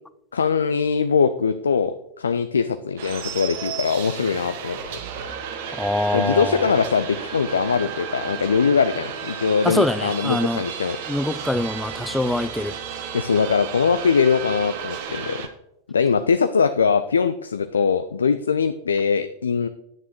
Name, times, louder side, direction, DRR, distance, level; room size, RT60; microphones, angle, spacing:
voice 1, 0.3-4.8 6.1-11.0 13.1-15.5 15.9-19.7, left 5 dB, 70° left, 10 dB, 0.4 m, -21 dB
sound 1, 3.0-15.5, right 7 dB, 50° right, 1.1 m, -33 dB
voice 2, 5.7-6.7 9.6-10.6 11.1-12.8, left 1 dB, 5° left, 14 dB, 0.4 m, -24 dB
10.5 x 9.0 x 3.0 m, 0.80 s
figure-of-eight pair, 90°, 0 cm